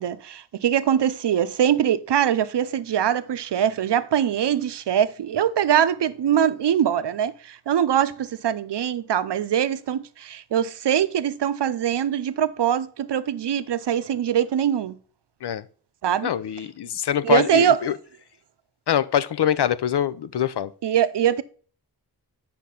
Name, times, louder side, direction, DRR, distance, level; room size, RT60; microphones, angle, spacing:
voice 1, 0.0-15.0 16.0-16.3 17.2-17.8 20.8-21.4, right 9 dB, 90° right, 0.6 m, -22 dB
voice 2, 16.2-18.0 18.9-20.7, left 9 dB, 75° left, 0.6 m, -24 dB
8.4 x 5.9 x 3.8 m
wide cardioid pair, 115°, 40 cm